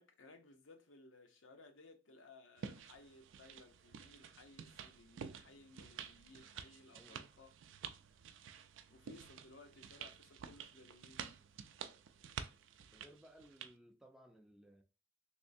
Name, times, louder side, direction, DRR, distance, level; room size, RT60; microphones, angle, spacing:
voice 1, 0.0-7.5 8.9-11.2, left 2 dB, 85° left, 0.8 m, -60 dB
sound 1, 2.6-13.7, right 7 dB, 75° right, 0.4 m, -51 dB
voice 2, 6.9-7.3 12.9-14.8, equal, ahead, 0.4 m, -61 dB
3.5 x 3.1 x 2.6 m
head